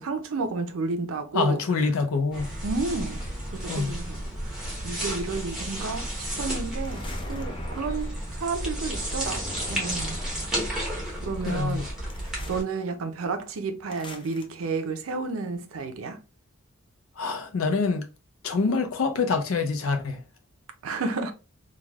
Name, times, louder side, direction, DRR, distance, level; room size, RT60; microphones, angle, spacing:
voice 1, 0.0-1.6 2.6-3.2 3.5-10.3 11.2-11.8 12.5-16.2 20.8-21.3, right 4 dB, 90° right, 0.5 m, -31 dB
voice 2, 1.3-2.5 3.7-3.9 11.4-11.8 17.2-18.0 18.4-20.2, left 4 dB, 85° left, 0.5 m, -25 dB
sound 1, 2.3-12.6, right 1 dB, 5° right, 0.9 m, -32 dB
sound 2, 6.8-8.3 9.2-10.7 12.1-12.6 13.9-14.5, left 2 dB, 25° left, 0.4 m, -41 dB
3.2 x 2.3 x 2.3 m
head